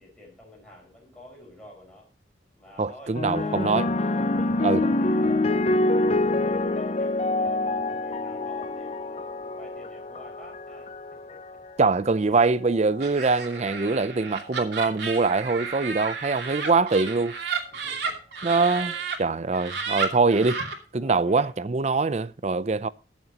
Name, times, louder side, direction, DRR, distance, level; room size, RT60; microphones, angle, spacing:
voice 1, 0.0-2.1 2.6-3.9 4.4-11.6 17.7-19.0 21.0-21.5, left 1 dB, 5° left, 5.4 m, -49 dB
voice 2, 2.8-3.9 4.6-4.8 11.8-17.3 18.4-18.9 19.2-20.6 20.9-22.9, right 3 dB, 40° right, 0.5 m, -23 dB
sound 1, 3.1-11.7 12.6-13.0, left 2 dB, 35° left, 0.6 m, -26 dB
Laughter, 13.0-19.2 19.5-20.7, right 5 dB, 70° right, 2.7 m, -32 dB
22.0 x 7.4 x 2.9 m
head